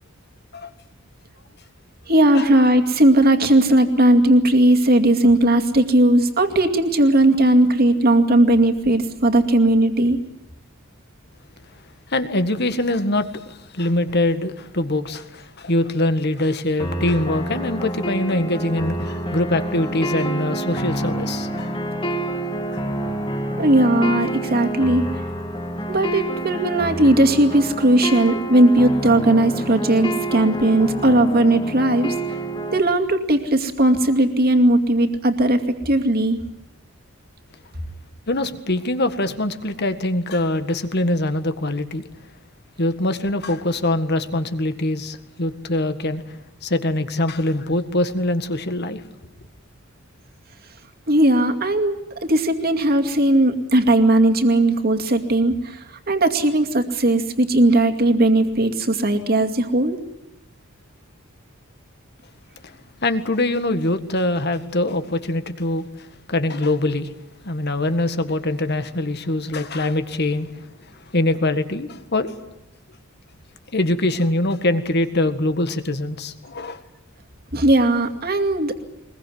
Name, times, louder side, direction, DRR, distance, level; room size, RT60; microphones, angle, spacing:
voice 1, 2.1-10.2 23.6-25.1 25.9-32.1 32.7-35.6 35.9-36.4 51.1-60.0 77.5-78.8, right 1 dB, 50° right, 2.4 m, -17 dB
voice 2, 12.1-21.7 38.3-42.0 42.8-46.2 46.6-49.0 63.0-65.9 66.3-67.1 67.4-70.5 71.1-72.3 73.7-76.8, left 1 dB, 55° left, 1.7 m, -23 dB
sound 1, 16.8-32.8, right 1 dB, 25° left, 2.0 m, -28 dB
22.0 x 21.5 x 9.5 m
head